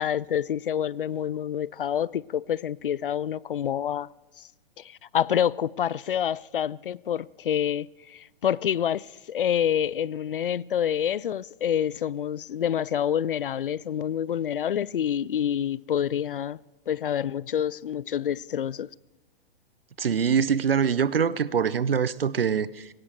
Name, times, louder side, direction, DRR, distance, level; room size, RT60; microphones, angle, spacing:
voice 1, 0.0-4.1 4.8-16.6 16.9-18.9, left 9 dB, 65° left, 0.4 m, -27 dB
voice 2, 20.0-22.9, right 7 dB, 75° right, 0.7 m, -24 dB
19.0 x 16.5 x 4.6 m
figure-of-eight pair, 120°, 30 cm